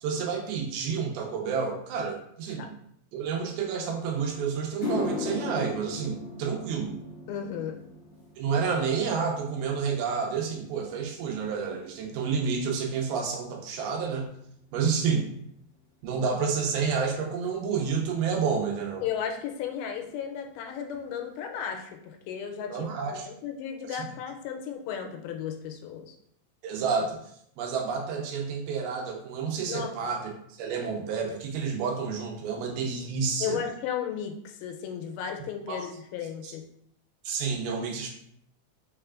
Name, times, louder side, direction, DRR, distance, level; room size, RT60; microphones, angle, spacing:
voice 1, 0.0-2.7 3.1-7.0 8.4-14.3 14.7-15.3 16.0-19.0 22.7-23.3 23.9-24.0 26.6-27.2 27.6-33.6 35.7-35.9 36.4-36.5 37.2-38.1, right 6 dB, 85° right, 1 dB, 2.6 m, -29 dB
sound 1, 4.1-4.2 4.6-13.1 13.4-13.8 14.6-14.7 17.4-17.5 19.2-19.3 19.5-19.7 20.0-20.5 20.9-21.0 21.5-21.6, left 3 dB, 50° left, 0.7 m, -39 dB
voice 2, 7.3-7.8 19.0-26.2 29.7-29.9 33.4-36.6, left 8 dB, 85° left, 3 dB, 2.4 m, -35 dB
5.6 x 3.2 x 2.4 m, 0.70 s
omnidirectional pair, 4.3 m